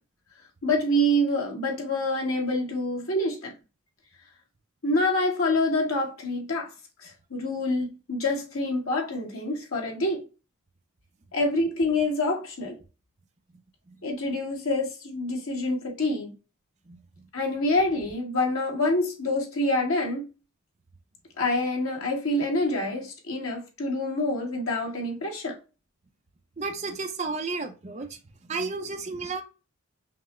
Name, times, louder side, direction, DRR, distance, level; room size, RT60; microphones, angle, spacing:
voice 1, 0.6-3.5 4.8-6.7 7.0-10.2 11.3-12.8 14.0-16.3 17.3-20.2 21.4-25.6, left 1 dB, 75° left, 1.5 m, -26 dB
voice 2, 26.6-28.2 28.5-29.4, right 4 dB, 30° right, 0.6 m, -32 dB
5.8 x 2.1 x 3.1 m
head